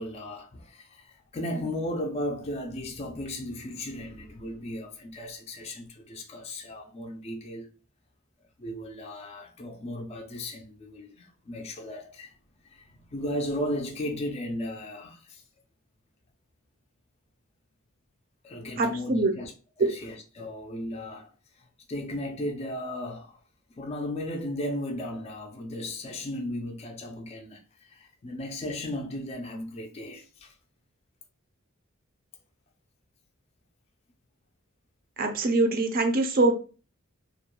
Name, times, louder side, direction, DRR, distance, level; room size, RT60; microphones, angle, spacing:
voice 1, 0.0-7.7 8.6-12.3 12.6-15.4 18.4-19.5 19.8-23.4 23.7-30.5, left 1 dB, 30° left, 0.3 m, -35 dB
voice 2, 18.8-19.3 19.8-19.9 35.2-36.5, right 2 dB, 45° right, 0.4 m, -23 dB
2.3 x 2.1 x 2.9 m
head